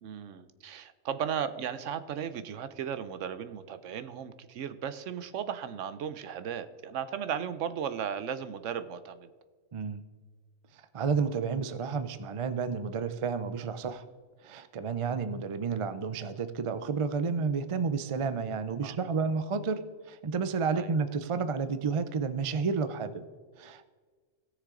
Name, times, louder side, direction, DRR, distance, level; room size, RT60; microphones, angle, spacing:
voice 1, 0.0-9.3 18.8-19.0 20.7-20.9, right 8 dB, 75° right, 12 dB, 1.0 m, -36 dB
voice 2, 10.9-14.0 14.4-23.2 23.6-23.9, right 5 dB, 45° right, 12 dB, 0.4 m, -31 dB
17.5 x 6.6 x 3.8 m, 1.5 s
omnidirectional pair, 1.3 m